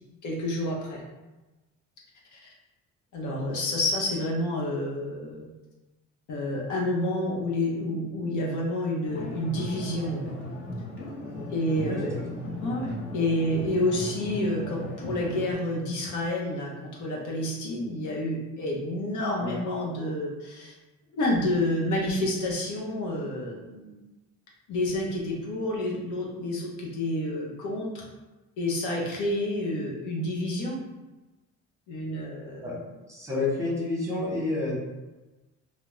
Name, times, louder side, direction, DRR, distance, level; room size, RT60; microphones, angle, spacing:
voice 1, 0.2-1.0 2.3-2.4 3.1-5.5 6.3-10.3 11.5-12.1 12.6-20.7 21.1-24.0 24.7-28.0 28.6-30.8 31.9-32.8, left 1 dB, 75° left, -2 dB, 0.7 m, -29 dB
sound 1, 9.1-15.5, left 1 dB, 45° left, 0.8 m, -37 dB
voice 2, 11.9-12.2 19.4-19.6 32.6-32.7 33.1-34.8, left 2 dB, 10° right, -6 dB, 0.9 m, -29 dB
2.3 x 2.0 x 3.0 m, 1.1 s
cardioid pair, 90°, 30 cm